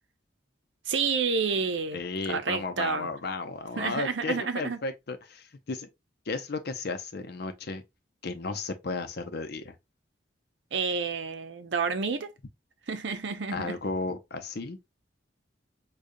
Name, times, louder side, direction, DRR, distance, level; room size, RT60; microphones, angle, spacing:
voice 1, 0.9-2.0 2.3-3.1 3.8-4.8 10.7-12.3 12.9-13.8, right 5 dB, 80° right, 0.6 m, -29 dB
voice 2, 1.9-5.9 6.3-7.8 8.2-9.7 13.5-14.8, left 3 dB, 60° left, 0.6 m, -34 dB
5.0 x 2.3 x 2.6 m
head